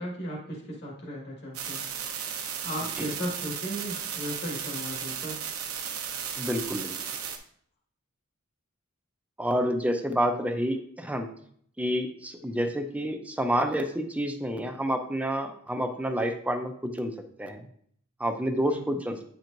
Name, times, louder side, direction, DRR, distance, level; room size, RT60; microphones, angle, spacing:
voice 1, 0.0-1.9 2.6-5.4 18.7-18.8, equal, 50° left, -3 dB, 1.7 m, -36 dB
sound 1, 1.5-7.4, right 8 dB, 80° right, 0.8 m, -35 dB
voice 2, 6.4-6.9 9.4-11.3 11.8-17.1 17.4-17.7 18.2-19.2, equal, 5° right, 6 dB, 0.5 m, -29 dB
9.1 x 4.5 x 2.6 m, 0.63 s
head